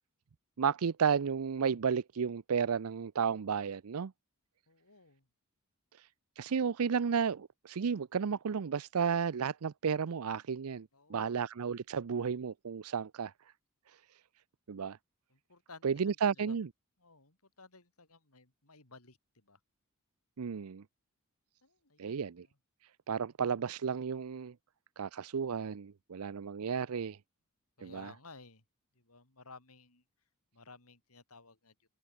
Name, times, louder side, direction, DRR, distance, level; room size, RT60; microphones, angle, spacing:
voice 1, 0.6-4.1 6.4-13.3 14.7-15.0 15.8-16.7 20.4-20.8 22.0-22.4 23.1-24.5 25.0-27.2 27.8-28.1, right 6 dB, 70° right, 0.5 m, -33 dB
voice 2, 4.7-5.3 10.9-11.5 11.9-12.0 15.3-16.6 17.0-19.6 21.6-22.6 27.8-28.6 28.9-30.0 30.5-31.9, left 3 dB, 75° left, 4.9 m, -56 dB
open air
head